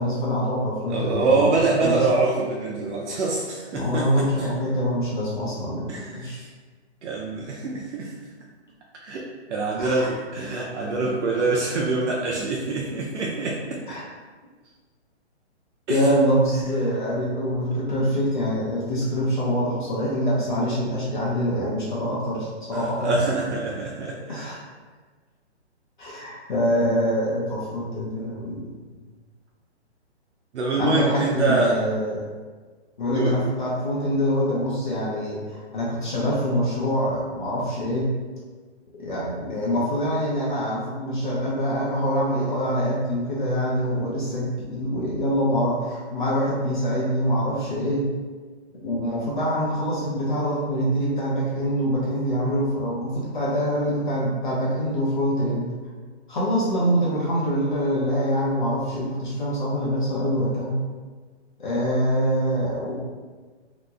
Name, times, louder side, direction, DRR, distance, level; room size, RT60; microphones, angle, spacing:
voice 1, 0.0-2.0 3.7-6.4 9.8-10.1 13.9-14.0 15.9-23.1 24.3-24.6 26.0-28.7 30.8-32.2 33.0-38.1 39.0-48.1 48.8-55.6 56.3-60.8 61.6-63.0, equal, 45° left, -6 dB, 0.7 m, -25 dB
voice 2, 0.9-4.5 5.9-6.5 7.0-8.1 9.0-13.8 15.9-16.0 22.7-24.5 30.5-31.8 33.1-33.4, right 3 dB, 85° right, -3 dB, 0.6 m, -25 dB
2.9 x 2.1 x 3.4 m, 1.4 s
hypercardioid pair, 175°, 34 cm